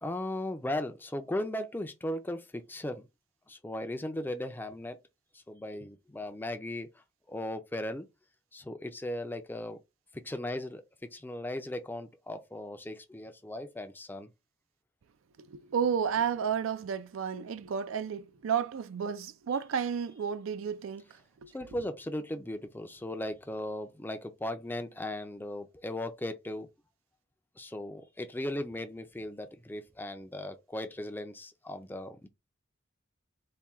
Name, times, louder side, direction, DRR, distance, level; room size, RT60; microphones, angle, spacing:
voice 1, 0.0-3.1 3.5-5.0 5.3-8.1 8.5-9.8 10.1-10.8 11.1-14.3 21.5-26.7 27.6-32.3, left 1 dB, 10° left, 0.4 m, -37 dB
voice 2, 15.5-21.2, right 7 dB, 80° right, 0.4 m, -32 dB
4.3 x 2.2 x 3.5 m
head